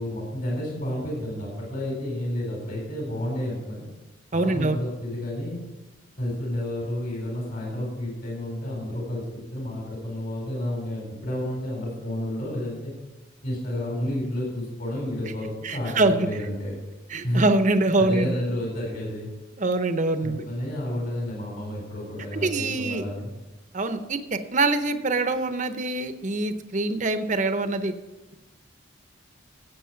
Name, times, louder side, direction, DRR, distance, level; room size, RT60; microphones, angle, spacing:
voice 1, 0.0-3.9 4.3-5.6 6.2-9.2 9.5-12.9 13.4-16.7 17.2-17.5 18.0-19.3 20.2-23.3, left 1 dB, 50° left, -2 dB, 4.1 m, -30 dB
voice 2, 4.3-4.8 15.6-16.1 17.1-18.3 19.6-20.4 22.3-23.0 23.7-27.9, right 2 dB, 40° right, 9 dB, 0.8 m, -24 dB
14.5 x 8.1 x 5.7 m, 1.1 s
head